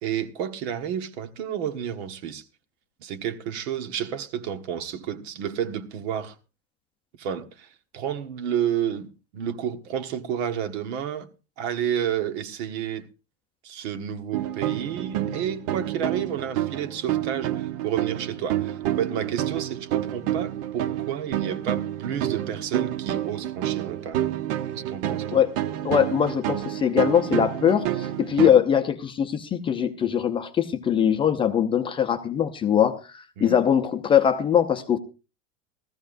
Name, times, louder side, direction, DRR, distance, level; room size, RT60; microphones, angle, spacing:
voice 1, 0.0-2.4 3.0-6.3 7.2-7.7 7.9-11.3 11.6-13.1 13.6-24.2 24.7-25.4 33.4-33.6, right 9 dB, 75° right, 1.6 m, -30 dB
sound 1, 14.3-28.5, right 12 dB, 60° right, 0.9 m, -29 dB
voice 2, 25.8-35.0, left 9 dB, 15° left, 0.6 m, -22 dB
18.5 x 14.5 x 2.6 m
cardioid pair, 175°, 33 cm